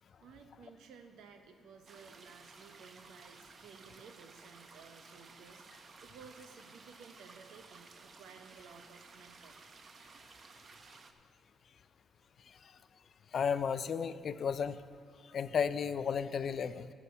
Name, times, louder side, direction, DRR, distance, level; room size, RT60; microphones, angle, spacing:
voice 1, 0.2-9.7, right 5 dB, 80° right, 7 dB, 1.0 m, -56 dB
sound 1, 1.9-11.1, right 4 dB, 45° right, 0.8 m, -56 dB
voice 2, 13.3-14.8 15.3-16.9, left 7 dB, 55° left, 14 dB, 0.4 m, -33 dB
11.0 x 7.0 x 6.9 m, 2.2 s
cardioid pair, 90°, 0 cm